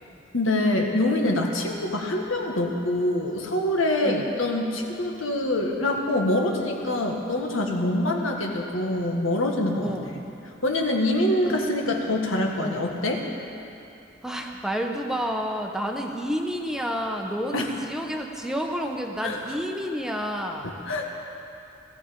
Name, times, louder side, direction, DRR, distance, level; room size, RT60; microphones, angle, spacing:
voice 1, 0.3-9.9 10.6-13.2 17.5-17.7 19.2-19.6 20.6-21.1, left 1 dB, 85° left, 1 dB, 1.8 m, -25 dB
voice 2, 9.8-10.2 11.4-11.6 12.6-12.8 14.2-20.8, equal, 5° right, 2 dB, 0.9 m, -30 dB
18.0 x 14.5 x 5.2 m, 2.7 s
head